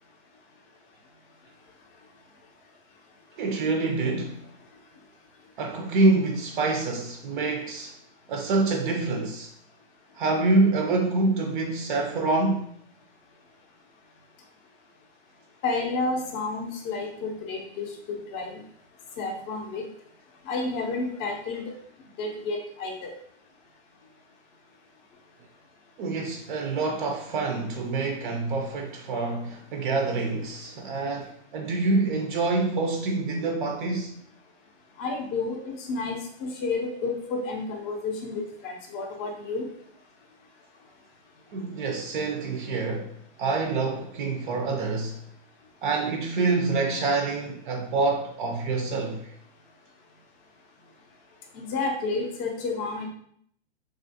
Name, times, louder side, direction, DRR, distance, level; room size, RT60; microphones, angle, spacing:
voice 1, 3.4-4.5 5.6-7.9 8.3-9.5 10.2-12.7 26.0-34.1 41.5-43.1 43.4-45.2 45.8-49.2, right 3 dB, 45° right, 0.4 m, -26 dB
voice 2, 15.6-18.5 19.2-19.9 20.5-21.6 22.2-23.1 35.0-39.7 51.5-53.1, left 3 dB, 25° left, 0.5 m, -31 dB
3.3 x 2.4 x 2.6 m
hypercardioid pair, 135°, 34 cm